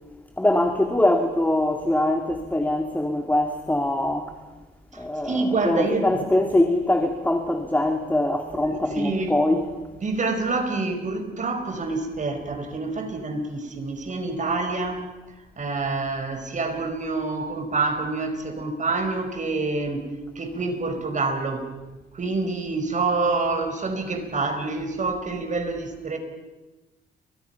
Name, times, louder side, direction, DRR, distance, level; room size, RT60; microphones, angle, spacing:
voice 1, 0.4-4.3 5.0-9.6, left 1 dB, 10° left, 5 dB, 2.3 m, -23 dB
voice 2, 4.9-6.2 8.6-9.3 10.0-15.1 15.4-21.7 22.1-26.2, right 3 dB, 40° right, 6 dB, 5.3 m, -27 dB
30.0 x 24.5 x 5.8 m, 1.1 s
cardioid pair, 90°, 20 cm